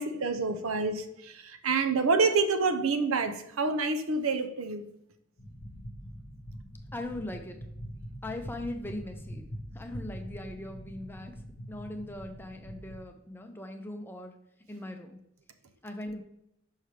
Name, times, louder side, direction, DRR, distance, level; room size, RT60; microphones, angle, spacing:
voice 1, 0.0-4.9, right 4 dB, 85° right, 0.7 m, -28 dB
sound 1, 5.4-13.0, equal, 45° left, 1.0 m, -43 dB
voice 2, 6.9-7.6 8.2-9.5 9.7-11.3 11.7-14.4 14.7-15.2 15.8-16.2, left 1 dB, 10° left, 0.5 m, -39 dB
6.3 x 5.5 x 3.3 m
head